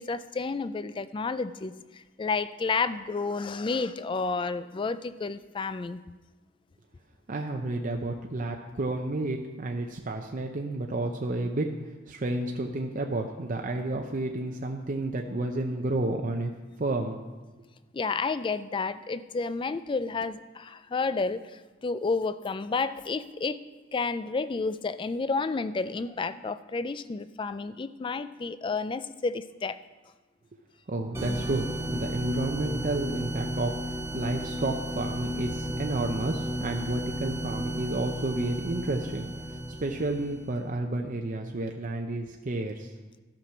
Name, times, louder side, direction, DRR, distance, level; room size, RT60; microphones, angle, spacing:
voice 1, 0.0-6.0 17.9-23.6 23.9-29.8, left 4 dB, 25° left, 14 dB, 0.3 m, -31 dB
voice 2, 7.3-16.5 16.8-17.2 30.9-42.9, right 2 dB, 40° right, 2 dB, 0.6 m, -31 dB
sound 1, 31.1-40.5, equal, 15° right, 0.8 m, -34 dB
13.0 x 6.0 x 5.9 m, 1.2 s
head